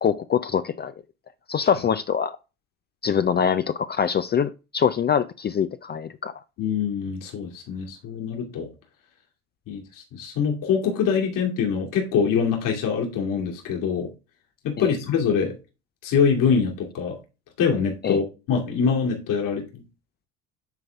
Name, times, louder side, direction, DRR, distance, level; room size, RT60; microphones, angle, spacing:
voice 1, 0.0-0.9 1.5-2.4 3.0-6.3 14.8-14.9 18.0-18.2, left 7 dB, 30° left, 0.5 m, -24 dB
voice 2, 6.6-8.7 9.7-14.1 14.6-15.5 16.0-17.2 17.6-19.8, left 6 dB, 65° left, 2.5 m, -24 dB
9.3 x 3.9 x 3.4 m
supercardioid pair, 80°, 35 cm